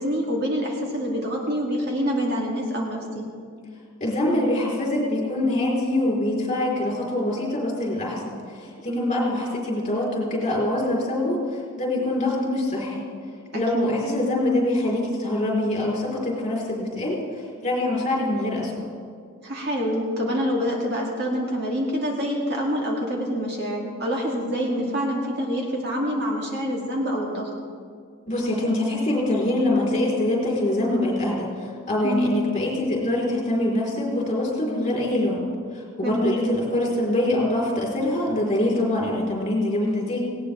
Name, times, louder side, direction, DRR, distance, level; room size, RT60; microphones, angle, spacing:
voice 1, 0.0-3.3 8.9-9.3 13.5-14.0 19.4-27.5 32.0-32.4 36.0-36.4, equal, 55° right, -2 dB, 2.5 m, -26 dB
voice 2, 4.0-13.0 13.5-17.2 17.6-18.9 28.3-35.4 35.7-40.2, left 1 dB, 35° left, -3 dB, 4.1 m, -24 dB
18.5 x 17.5 x 3.5 m, 2.1 s
head